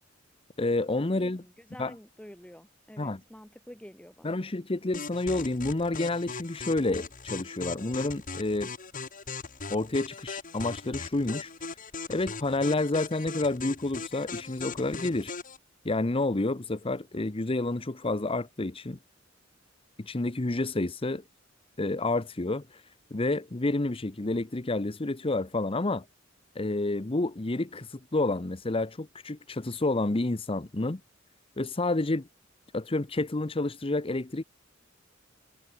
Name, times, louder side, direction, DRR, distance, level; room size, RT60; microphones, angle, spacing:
voice 1, 0.6-1.4 1.8-1.9 3.0-3.2 4.2-8.7 9.7-11.5 12.1-15.3 15.8-19.0 20.0-21.2 21.8-22.8 23.1-26.0 26.5-31.0 31.6-32.3 32.7-34.4, left 2 dB, 30° left, 0.9 m, -29 dB
voice 2, 1.1-4.4, equal, 5° left, 3.7 m, -49 dB
sound 1, 4.9-15.6, left 4 dB, 45° left, 3.4 m, -39 dB
head